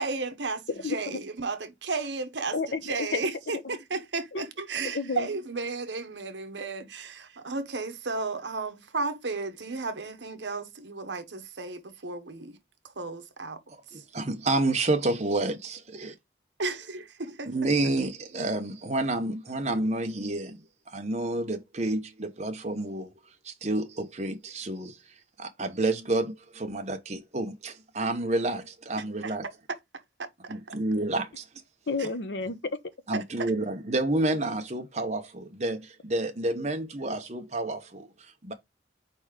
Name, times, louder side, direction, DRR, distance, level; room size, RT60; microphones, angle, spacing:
voice 1, 0.0-12.6 13.0-13.6 13.9-14.0 16.6-17.5 29.2-29.3 30.4-30.7 33.1-33.5, right 3 dB, 80° right, 1.1 m, -34 dB
voice 2, 0.8-1.2 2.5-2.8 3.1-3.2 3.6-3.7 4.3-4.4 4.9-5.3 31.9-32.6, left 4 dB, 70° left, 0.8 m, -30 dB
voice 3, 13.7-16.1 17.4-23.1 23.4-25.0 25.4-29.5 30.5-31.4 33.1-38.5, right 2 dB, 40° right, 1.1 m, -29 dB
4.7 x 4.2 x 5.0 m
head